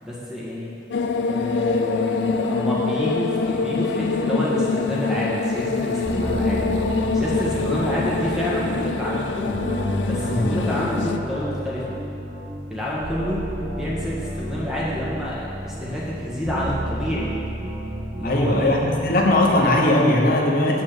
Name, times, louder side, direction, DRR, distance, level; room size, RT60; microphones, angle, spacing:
voice 1, 0.0-0.7 1.3-9.6 10.0-12.0 12.7-13.4 13.7-17.3 18.2-18.8 19.5-19.7, equal, 5° right, -7 dB, 1.5 m, -28 dB
sound 1, 0.9-11.2, left 4 dB, 85° left, 0.4 m, -24 dB
sound 2, 6.0-19.8, equal, 35° right, 1.7 m, -31 dB
voice 2, 10.3-10.6 18.2-20.8, left 1 dB, 55° left, 0 dB, 1.0 m, -19 dB
7.5 x 4.2 x 6.7 m, 2.7 s
head